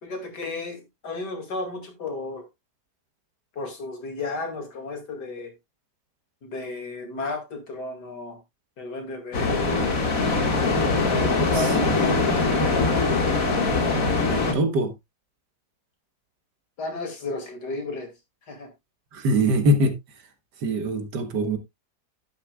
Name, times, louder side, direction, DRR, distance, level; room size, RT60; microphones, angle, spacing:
voice 1, 0.0-2.4 3.5-5.5 6.4-8.4 8.8-9.9 11.2-12.2 16.8-18.1 18.5-18.7, left 2 dB, 85° left, 3.0 m, -33 dB
sound 1, 9.3-14.5, left 3 dB, 55° left, 2.2 m, -22 dB
voice 2, 11.5-12.0 14.3-14.9 19.1-19.9 20.6-21.6, right 1 dB, 80° right, 1.9 m, -23 dB
11.0 x 9.5 x 2.3 m
omnidirectional pair, 1.8 m